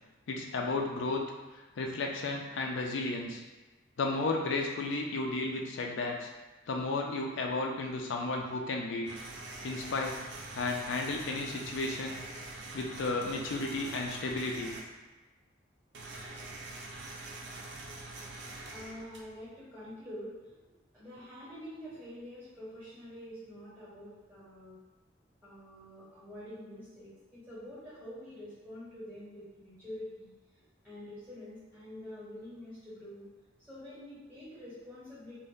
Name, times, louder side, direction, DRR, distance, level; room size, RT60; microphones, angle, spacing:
voice 1, 0.3-1.2 1.8-3.4 4.0-6.3 6.7-9.1 9.6-10.1 10.6-12.2 12.7-14.7, left 3 dB, 75° left, 1 dB, 0.4 m, -33 dB
sound 1, 9.0-14.8 15.9-19.6, right 2 dB, 65° right, 0.4 m, -44 dB
voice 2, 18.7-20.4 20.7-24.8 25.4-30.3 30.8-33.3 33.6-35.3, left 1 dB, 10° right, -11 dB, 1.1 m, -46 dB
2.6 x 2.1 x 3.5 m, 1.2 s
head